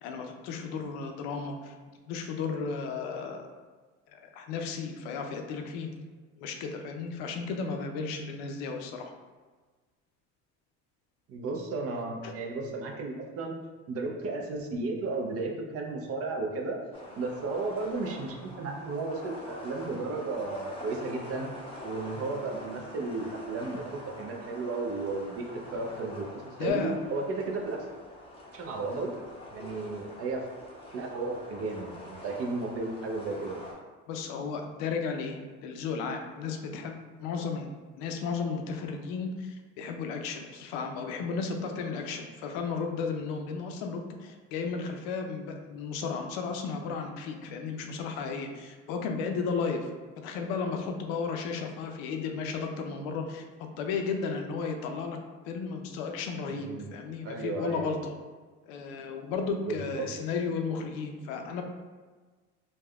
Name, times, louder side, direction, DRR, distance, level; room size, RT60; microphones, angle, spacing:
voice 1, 0.0-1.7 2.1-3.5 4.1-5.9 6.4-9.1 12.2-12.3 26.6-27.0 34.1-58.2 58.6-61.6, left 5 dB, 80° left, 4 dB, 0.5 m, -34 dB
voice 2, 11.3-13.6 13.9-16.8 17.2-21.5 21.8-26.3 26.6-27.9 28.5-29.1 29.5-30.4 30.9-33.6 56.5-56.9 57.2-58.0 59.7-60.1, right 3 dB, 45° right, 2 dB, 0.5 m, -34 dB
sound 1, 16.9-33.7, left 1 dB, 15° left, 0.6 m, -45 dB
3.3 x 2.2 x 2.3 m, 1.4 s
supercardioid pair, 95°, 34 cm